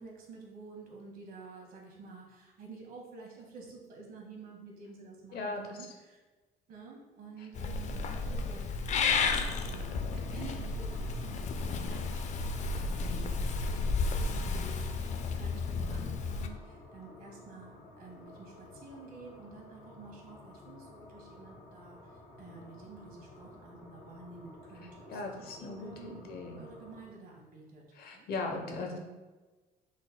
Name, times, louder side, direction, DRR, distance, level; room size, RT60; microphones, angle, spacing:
voice 1, 0.0-6.2 6.7-12.7 13.0-27.8 28.1-28.3, right 3 dB, 60° right, -2 dB, 1.5 m, -50 dB
voice 2, 5.3-5.8 25.1-26.6 27.9-29.0, left 3 dB, 65° left, 2 dB, 0.9 m, -38 dB
Purr / Meow, 7.5-16.5, left 4 dB, 45° left, 0.4 m, -32 dB
sound 1, 9.1-27.0, left 2 dB, 85° left, 1.1 m, -53 dB
6.3 x 3.8 x 2.2 m, 1.2 s
cardioid pair, 110°, 17 cm